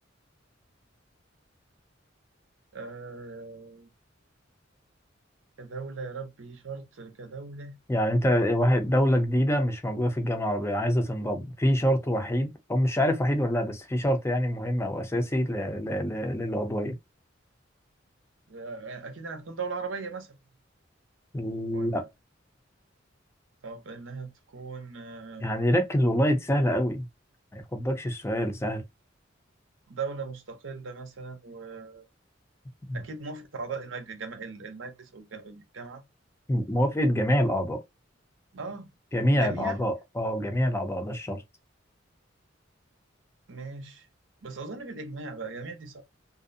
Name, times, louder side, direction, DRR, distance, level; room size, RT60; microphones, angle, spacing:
voice 1, 2.7-3.9 5.6-7.8 18.5-20.4 21.7-22.1 23.6-25.5 29.9-32.1 32.9-36.0 38.5-38.9 39.3-39.8 43.5-44.1 44.4-46.0, right 4 dB, 80° right, 0.7 m, -39 dB
voice 2, 7.9-17.0 21.3-22.0 25.4-27.0 27.5-28.8 32.9-33.0 36.5-37.8 39.1-41.4, equal, 15° left, 0.6 m, -26 dB
2.6 x 2.0 x 2.5 m
head